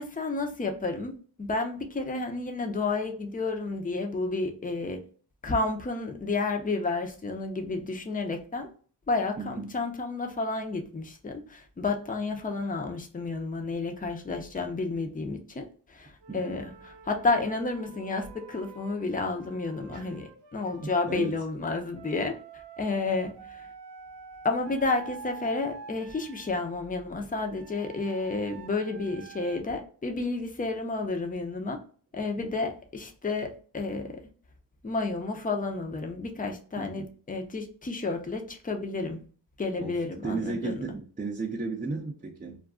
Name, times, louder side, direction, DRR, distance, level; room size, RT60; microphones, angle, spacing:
voice 1, 0.0-5.0 5.4-8.7 9.1-22.4 22.8-23.7 24.4-31.8 32.1-34.2 34.8-39.2 39.6-40.8, left 3 dB, 20° left, 4 dB, 0.7 m, -31 dB
voice 2, 9.4-9.7 16.3-16.6 19.9-20.1 20.8-21.4 32.4-32.5 36.8-37.1 39.8-39.9 40.2-42.6, right 3 dB, 20° right, -1 dB, 0.6 m, -34 dB
Wind instrument woodwind instrument, 16.2-21.3 21.9-26.6 27.4-29.6, right 5 dB, 85° right, 0.6 m, -48 dB
2.4 x 2.2 x 3.6 m, 0.42 s
cardioid pair, 60°, 42 cm